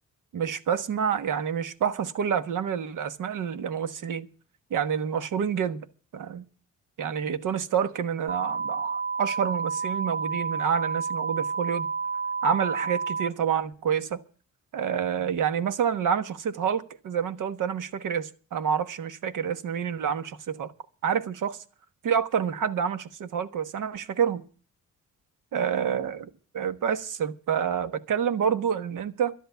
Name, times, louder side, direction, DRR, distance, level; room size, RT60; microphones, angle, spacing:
voice 1, 0.3-4.3 4.7-5.8 6.1-6.4 7.0-11.9 12.4-14.2 14.7-20.7 21.0-21.6 22.0-24.4 25.5-29.3, right 7 dB, 75° right, 1.3 m, -28 dB
sound 1, 8.3-13.3, right 5 dB, 30° right, 1.5 m, -30 dB
12.0 x 10.5 x 6.9 m
wide cardioid pair, 140°, 31 cm